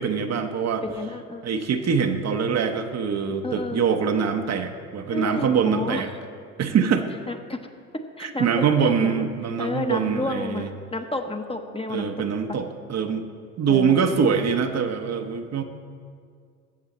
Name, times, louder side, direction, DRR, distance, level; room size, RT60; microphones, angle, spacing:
voice 1, 0.0-0.8 1.4-6.1 6.6-7.1 8.2-10.7 11.9-13.3 13.6-15.6, right 6 dB, 40° right, 6 dB, 0.8 m, -24 dB
voice 2, 0.8-1.5 3.4-3.8 5.1-6.0 7.3-7.6 8.2-9.2 9.6-12.1 12.5-12.6 13.7-14.1, left 2 dB, 15° left, 5 dB, 0.9 m, -31 dB
14.5 x 7.3 x 4.1 m, 2.2 s
hypercardioid pair, 60°, 41 cm